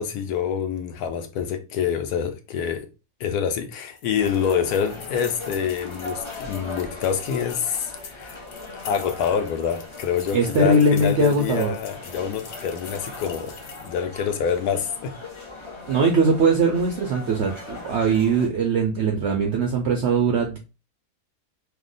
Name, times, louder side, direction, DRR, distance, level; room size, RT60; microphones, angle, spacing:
voice 1, 0.0-2.9 3.2-8.4 8.8-13.5 13.8-15.1, left 7 dB, 80° left, 1.1 m, -26 dB
sound 1, 4.0-14.0, left 6 dB, 60° left, 0.8 m, -44 dB
sound 2, 4.2-18.5, left 2 dB, 40° left, 0.4 m, -39 dB
voice 2, 10.3-11.7 15.9-20.6, right 3 dB, 70° right, 0.6 m, -21 dB
2.9 x 2.1 x 3.8 m
omnidirectional pair, 1.7 m